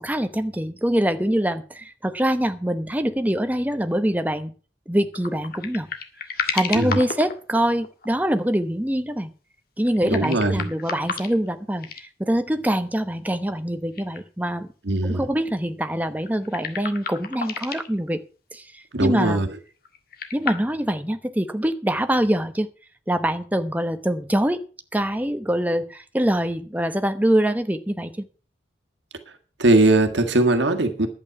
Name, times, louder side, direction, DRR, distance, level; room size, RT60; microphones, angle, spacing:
voice 1, 0.0-4.5 4.9-5.9 6.5-9.3 9.8-14.7 15.0-18.2 18.5-19.4 20.3-22.7 23.1-24.6 24.9-28.3, right 1 dB, 10° right, 9 dB, 0.9 m, -24 dB
sound 1, 5.1-8.0 9.8-11.5 11.8-12.0 13.3-13.4 13.9-14.2 14.5-14.6 15.8-17.9 19.8-20.5, left 6 dB, 50° left, 1.7 m, -31 dB
voice 2, 10.0-10.7 14.9-15.3 18.9-19.5 29.6-31.1, right 2 dB, 65° right, 5 dB, 1.7 m, -20 dB
11.5 x 8.9 x 5.9 m, 0.38 s
head